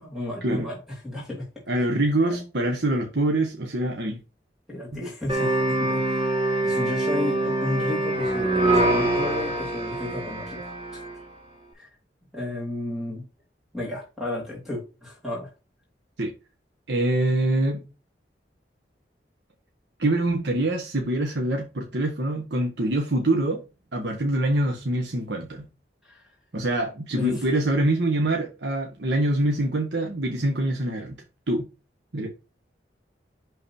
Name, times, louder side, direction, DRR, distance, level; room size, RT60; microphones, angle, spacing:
voice 1, 0.0-1.5 2.2-2.4 4.7-6.3 6.6-11.0 11.7-11.9 12.3-13.2 13.7-15.5 26.0-26.3 27.1-27.4, left 1 dB, ahead, 3.0 m, -33 dB
voice 2, 1.7-4.2 16.2-16.3 16.9-17.8 20.0-23.6 23.9-25.6 26.5-31.2 31.5-31.6 32.1-32.3, right 1 dB, 75° right, 1.2 m, -24 dB
sound 1, 5.3-11.2, right 1 dB, 30° right, 2.5 m, -24 dB
10.5 x 3.9 x 2.7 m
head